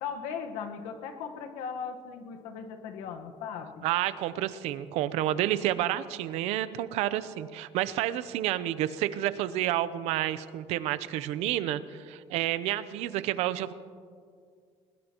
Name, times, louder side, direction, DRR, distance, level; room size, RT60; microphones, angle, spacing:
voice 1, 0.0-3.8, left 6 dB, 80° left, 5 dB, 1.3 m, -38 dB
voice 2, 3.8-13.7, right 13 dB, 70° right, 14 dB, 0.7 m, -30 dB
21.5 x 20.5 x 3.0 m, 2.1 s
cardioid pair, 160°, 11 cm